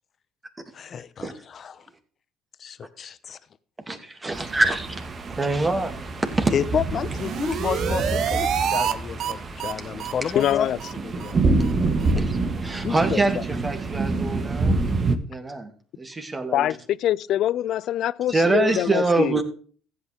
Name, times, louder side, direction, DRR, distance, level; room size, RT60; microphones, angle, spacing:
voice 1, 0.7-1.9 2.6-3.4 6.5-10.7 11.0-11.4 12.8-13.4, left 7 dB, 50° left, 1.0 m, -30 dB
voice 2, 3.9-4.9 5.4-6.5 10.2-10.3 12.0-14.8 15.3-15.7 16.0-16.7 18.3-19.4, right 2 dB, 25° right, 2.8 m, -25 dB
sound 1, 4.3-15.2, right 3 dB, 40° right, 1.7 m, -27 dB
sound 2, 6.9-8.9 9.2-9.3 9.6-9.7 10.0-10.1 10.4-10.5 10.8-10.9 11.2-11.3 11.6-11.7 12.0-12.1, right 8 dB, 60° right, 1.1 m, -27 dB
voice 3, 10.3-10.8 16.5-19.3, left 12 dB, 65° left, 0.4 m, -24 dB
15.0 x 8.8 x 3.6 m
supercardioid pair, 70°, 0 cm